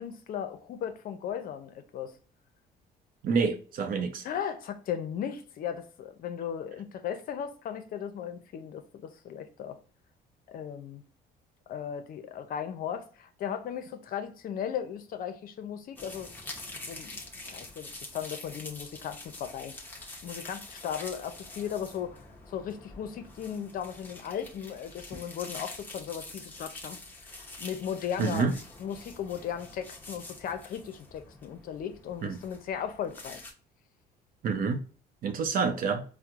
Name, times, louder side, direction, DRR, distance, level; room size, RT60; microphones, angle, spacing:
voice 1, 0.0-2.1 4.2-9.8 10.5-11.0 11.7-16.3 16.9-19.7 20.2-22.2 22.5-28.5 28.8-33.5, left 8 dB, 55° left, 0.6 m, -37 dB
voice 2, 3.2-4.2 28.2-28.5 32.2-32.4 34.4-34.8 35.2-36.0, right 5 dB, 60° right, 0.6 m, -27 dB
sound 1, 16.0-33.5, left 2 dB, 10° left, 0.8 m, -46 dB
4.3 x 2.1 x 2.4 m
cardioid pair, 110°, 17 cm